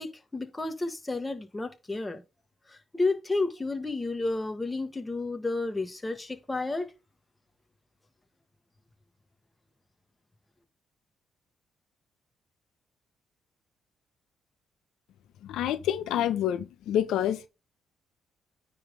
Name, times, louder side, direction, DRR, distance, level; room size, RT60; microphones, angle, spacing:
voice 1, 0.0-2.2 2.9-6.9, left 3 dB, 15° left, 1.7 m, -31 dB
voice 2, 15.4-17.5, left 11 dB, 85° left, 0.8 m, -28 dB
9.4 x 3.7 x 5.3 m
cardioid pair, 90°, 0 cm